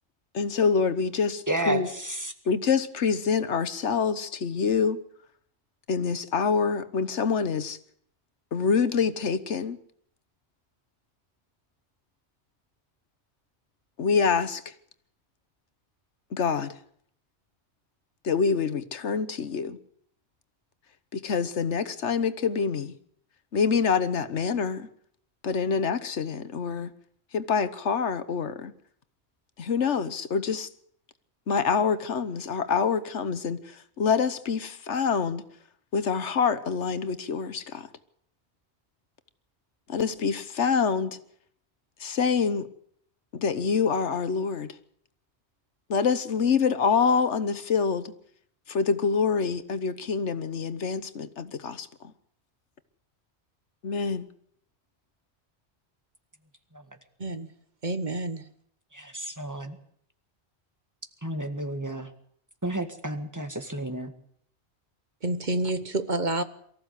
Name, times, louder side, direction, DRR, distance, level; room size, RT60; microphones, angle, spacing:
voice 1, 0.3-1.9 2.5-5.0 5.9-7.8 8.5-9.8 14.0-14.6 16.3-16.7 18.2-19.8 21.1-22.9 23.5-24.9 25.4-26.9 27.3-28.7 29.6-30.7 31.5-33.6 34.0-35.4 35.9-37.9 39.9-41.2 42.0-42.7 43.3-44.7 45.9-48.1 48.7-51.9 53.8-54.3, left 5 dB, 90° left, 1.5 m, -26 dB
voice 2, 1.5-2.3 56.7-56.9 58.9-59.8 61.2-62.1 62.6-64.1, right 1 dB, 15° right, 1.8 m, -31 dB
voice 3, 57.8-58.5 65.2-66.4, right 2 dB, 45° right, 1.2 m, -28 dB
23.5 x 14.5 x 8.3 m
omnidirectional pair, 1.1 m